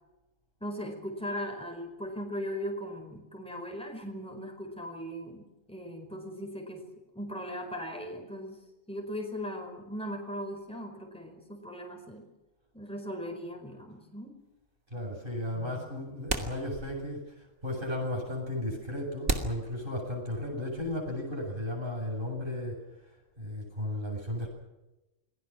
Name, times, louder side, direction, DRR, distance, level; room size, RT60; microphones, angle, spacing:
voice 1, 0.6-6.9 7.1-8.6 8.9-12.3 12.7-14.4, equal, 5° left, 3 dB, 4.7 m, -38 dB
sound 1, 14.4-14.5 15.6-15.7 16.3-17.2 17.5-17.6 18.3-18.4 19.2-20.5, right 2 dB, 65° right, 3.0 m, -34 dB
voice 2, 14.9-24.5, left 1 dB, 45° right, -1 dB, 8.1 m, -35 dB
28.5 x 21.5 x 6.2 m, 1.0 s
omnidirectional pair, 1.3 m